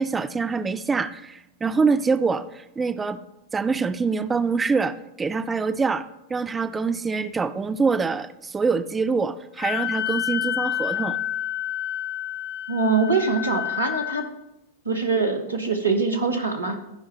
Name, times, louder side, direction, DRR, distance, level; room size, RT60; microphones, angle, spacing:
voice 1, 0.0-3.2 3.5-11.2, right 4 dB, 15° right, 11 dB, 0.4 m, -25 dB
Wind instrument woodwind instrument, 9.6-14.3, left 12 dB, 45° left, 0.5 m, -29 dB
voice 2, 12.7-14.2 14.8-16.8, right 4 dB, 75° right, 5 dB, 1.2 m, -23 dB
13.5 x 5.1 x 4.3 m, 0.89 s
figure-of-eight pair, 90°, 0 cm